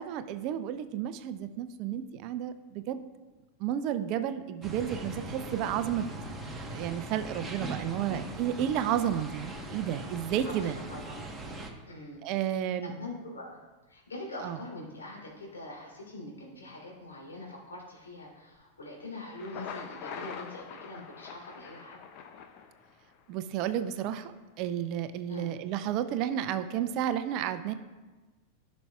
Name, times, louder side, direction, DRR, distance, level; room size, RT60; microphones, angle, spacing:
voice 1, 0.0-3.0 3.6-6.1 6.7-10.8 12.2-12.9 14.4-14.6 23.3-27.7, right 10 dB, 40° right, 10 dB, 0.5 m, -32 dB
sound 1, 4.6-11.7, right 2 dB, 10° right, 1.1 m, -40 dB
voice 2, 10.4-11.2 11.8-12.2 12.8-13.6 13.9-22.0 25.3-25.5, left 2 dB, 70° left, -4 dB, 2.9 m, -43 dB
Thunder, 19.2-23.2, left 7 dB, 40° left, 0.7 m, -44 dB
15.0 x 6.1 x 2.3 m, 1.2 s
figure-of-eight pair, 90°, 0 cm